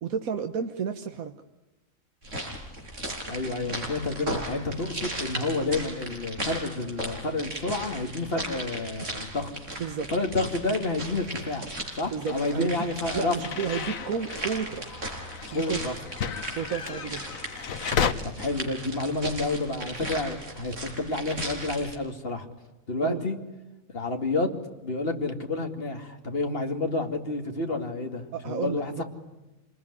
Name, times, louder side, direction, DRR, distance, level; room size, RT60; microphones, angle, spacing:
voice 1, 0.0-1.3 9.8-10.1 12.1-12.9 13.1-14.9 15.5-15.8 16.5-17.2 23.0-23.2 28.3-29.0, right 7 dB, 85° right, 6 dB, 1.6 m, -31 dB
sound 1, 2.2-22.0, right 1 dB, 60° right, 5.8 m, -37 dB
voice 2, 3.3-9.5 10.1-11.7 11.9-13.3 15.5-15.9 18.2-22.5 22.9-23.4 23.9-24.5 24.8-29.0, left 2 dB, 45° left, 4 dB, 2.7 m, -29 dB
sound 2, 12.3-18.1, left 7 dB, 75° left, 1.5 m, -33 dB
26.5 x 20.0 x 9.9 m, 1.1 s
omnidirectional pair, 1.4 m